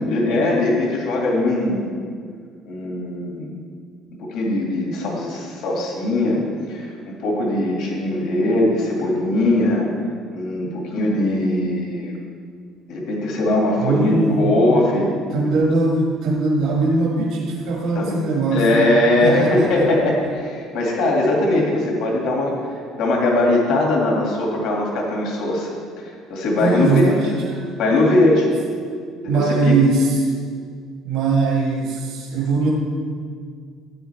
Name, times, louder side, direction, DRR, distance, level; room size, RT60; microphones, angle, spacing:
voice 1, 0.0-2.0 2.7-3.5 4.2-6.4 6.7-9.9 10.3-12.1 12.9-15.2 17.9-18.2 18.5-22.5 23.0-25.7 26.3-27.0 27.8-28.5 29.2-29.7, left 2 dB, 65° left, -1 dB, 2.3 m, -20 dB
voice 2, 13.8-14.5 15.3-19.9 26.6-27.7 29.3-30.3 31.0-32.7, right 3 dB, 65° right, -3 dB, 1.4 m, -21 dB
13.5 x 9.5 x 3.4 m, 2.1 s
cardioid pair, 160°, 0 cm